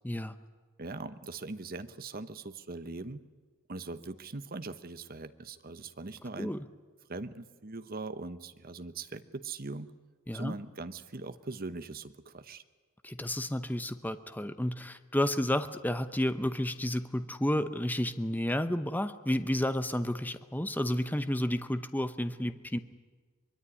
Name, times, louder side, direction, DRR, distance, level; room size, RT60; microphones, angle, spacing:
voice 1, 0.8-3.2 3.7-6.5 7.1-9.9 10.3-12.6, right 3 dB, 40° right, 11 dB, 1.0 m, -41 dB
voice 2, 13.0-22.8, left 1 dB, 10° left, 10 dB, 0.8 m, -31 dB
24.0 x 22.0 x 10.0 m, 1.4 s
head